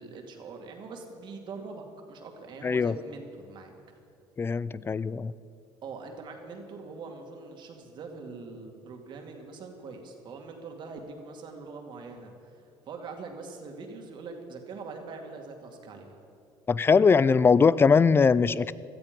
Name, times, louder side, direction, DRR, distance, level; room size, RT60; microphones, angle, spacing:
voice 1, 0.0-3.7 5.8-16.2, right 4 dB, 55° right, 3 dB, 2.4 m, -43 dB
voice 2, 2.6-2.9 4.4-5.3 16.7-18.7, left 5 dB, 25° left, 19 dB, 0.4 m, -21 dB
17.0 x 13.0 x 5.3 m, 2.5 s
supercardioid pair, 100°, 10 cm